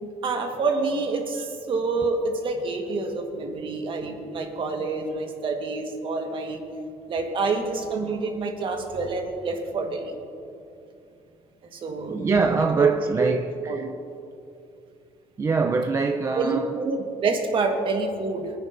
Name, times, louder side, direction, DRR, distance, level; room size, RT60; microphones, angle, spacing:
voice 1, 0.0-6.6 7.1-10.1 11.7-12.2 12.7-12.9 13.2-13.3 13.7-13.9 16.3-18.5, right 4 dB, 45° right, 1.5 m, -27 dB
voice 2, 12.1-13.9 15.4-16.8, right 4 dB, 25° right, 0.5 m, -24 dB
22.5 x 9.7 x 2.6 m
cardioid pair, 110°, 12 cm